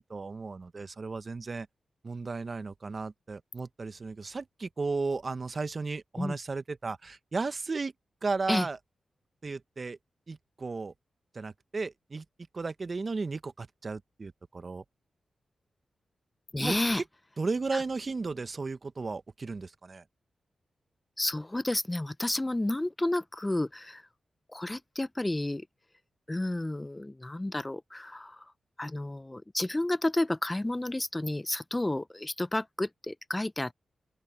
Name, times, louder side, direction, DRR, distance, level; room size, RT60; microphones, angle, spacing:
voice 1, 0.0-1.7 2.0-7.9 8.2-8.8 9.4-10.0 10.3-10.9 11.3-12.2 12.5-14.8 16.6-17.0 17.4-20.0, right 4 dB, 50° right, 1.2 m, -34 dB
voice 2, 16.5-17.0 17.7-17.8 21.2-24.0 24.5-25.7 26.3-28.5 28.8-33.7, left 1 dB, 20° left, 0.8 m, -31 dB
open air
cardioid pair, 45°, 0 cm